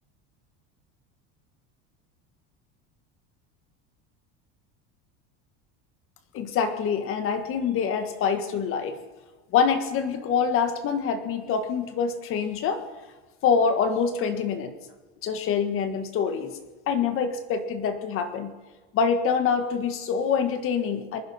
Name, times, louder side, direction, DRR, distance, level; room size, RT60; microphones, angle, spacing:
voice 1, 6.3-9.0 9.5-12.8 13.4-14.7 15.2-16.6 16.9-18.5 18.9-21.2, left 6 dB, 40° left, 7 dB, 1.7 m, -25 dB
26.0 x 11.0 x 4.3 m, 1.3 s
cardioid pair, 160°, 32 cm